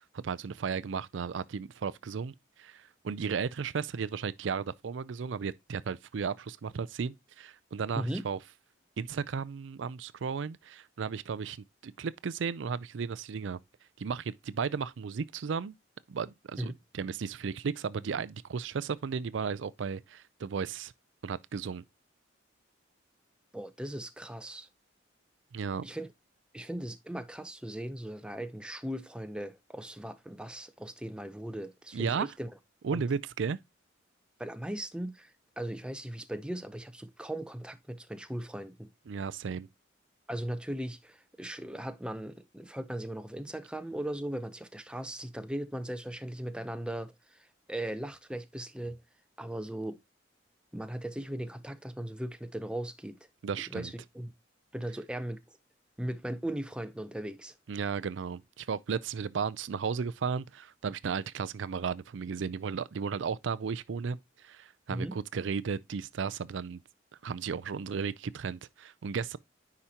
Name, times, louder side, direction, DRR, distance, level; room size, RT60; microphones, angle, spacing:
voice 1, 0.0-8.4 9.0-11.6 11.8-13.6 14.0-15.7 16.1-20.9 21.2-21.8 25.5-25.9 31.9-32.3 32.8-33.6 39.1-39.7 53.4-53.9 57.7-64.2 64.4-66.8 67.2-69.4, right 6 dB, 70° right, 0.4 m, -34 dB
voice 2, 8.0-8.3 16.6-16.7 23.5-24.7 25.8-26.1 26.5-32.5 32.9-33.1 34.4-38.9 40.3-49.0 49.4-50.0 50.7-53.2 53.7-54.3 54.7-55.4 56.0-57.6 64.9-65.2, right 1 dB, 5° right, 0.6 m, -38 dB
9.9 x 5.0 x 2.8 m
head